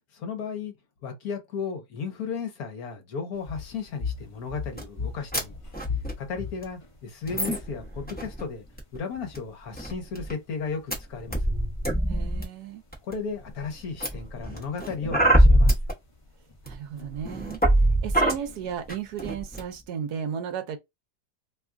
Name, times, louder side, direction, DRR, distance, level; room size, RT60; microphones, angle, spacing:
voice 1, 0.1-0.7 1.0-5.6 6.2-8.6 8.9-11.5 13.0-15.8, left 5 dB, 65° left, 1.2 m, -34 dB
sound 1, 3.3-19.2, left 5 dB, 45° left, 0.4 m, -42 dB
sound 2, 4.8-4.9 5.3-5.4 5.6-6.1 6.6-6.7 7.2-8.4 8.8-9.0 9.3-9.4 9.7-10.3 10.9-11.0 11.3-12.4 12.9-13.4 14.0-15.9 16.7-16.8 17.1-18.3 18.9-19.0 19.2-19.6, right 1 dB, 10° left, 0.7 m, -23 dB
voice 2, 12.1-12.8 16.6-20.8, right 8 dB, 70° right, 1.1 m, -34 dB
3.0 x 2.3 x 3.5 m
omnidirectional pair, 1.8 m